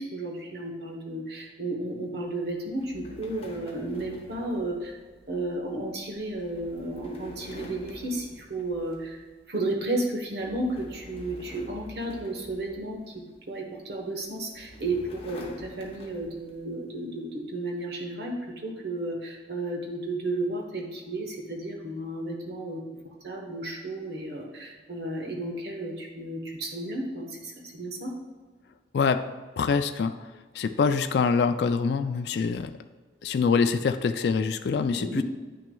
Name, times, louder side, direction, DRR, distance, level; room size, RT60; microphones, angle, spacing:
voice 1, 0.0-5.0 5.3-9.2 9.5-22.8 23.2-28.1 35.0-35.2, right 2 dB, 60° right, 1 dB, 1.1 m, -33 dB
sound 1, 2.8-9.3 9.7-10.0 10.4-13.4 14.2-16.6, left 1 dB, 30° left, 0.8 m, -47 dB
voice 2, 29.6-32.7 33.2-35.2, left 5 dB, 60° left, 8 dB, 0.3 m, -25 dB
9.1 x 6.0 x 2.3 m, 1.4 s
head